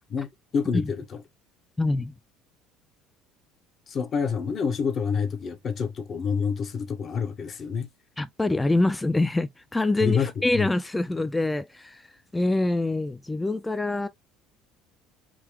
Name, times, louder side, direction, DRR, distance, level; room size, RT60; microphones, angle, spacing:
voice 1, 0.1-0.8 3.9-7.9 10.0-10.3 10.6-10.7, left 6 dB, 45° left, 0.9 m, -27 dB
voice 2, 1.8-2.1 8.2-14.1, left 2 dB, 10° left, 0.4 m, -25 dB
3.8 x 2.8 x 3.0 m
hypercardioid pair, 70°, 0 cm